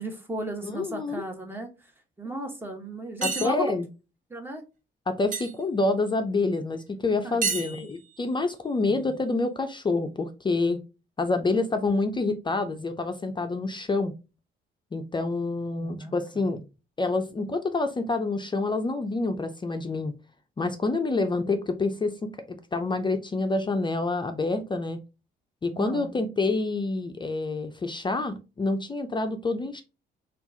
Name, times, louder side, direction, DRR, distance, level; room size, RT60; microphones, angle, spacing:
voice 1, 0.0-1.7 2.2-3.7 4.3-4.6 7.2-7.9 8.8-9.1 15.8-16.5 25.7-26.1, right 1 dB, 10° right, 1.0 m, -35 dB
voice 2, 0.6-1.2 2.3-2.4 3.2-3.9 5.1-10.8 11.2-14.1 14.9-16.6 17.0-20.1 20.6-25.0 25.6-29.8, left 3 dB, 25° left, 0.4 m, -27 dB
sound 1, 3.2-3.5 5.3-5.5 7.4-8.2, right 5 dB, 40° right, 0.7 m, -29 dB
4.3 x 2.4 x 2.6 m
cardioid pair, 90°, 20 cm